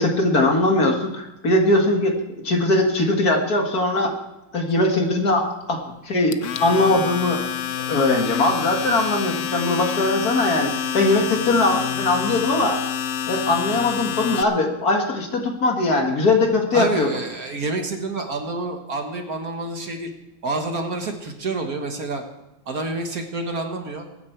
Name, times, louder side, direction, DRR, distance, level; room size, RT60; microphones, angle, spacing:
voice 1, 0.0-2.2 2.4-4.1 4.5-5.8 6.1-7.4 7.9-12.8 13.3-17.1, left 2 dB, 50° left, 2 dB, 2.1 m, -20 dB
Domestic sounds home sounds, 6.3-14.4, left 8 dB, 80° left, 0.6 m, -27 dB
voice 2, 16.7-20.1 20.4-22.2 22.6-24.0, right 3 dB, 50° right, 4 dB, 1.8 m, -28 dB
22.5 x 9.6 x 4.6 m, 0.96 s
omnidirectional pair, 2.1 m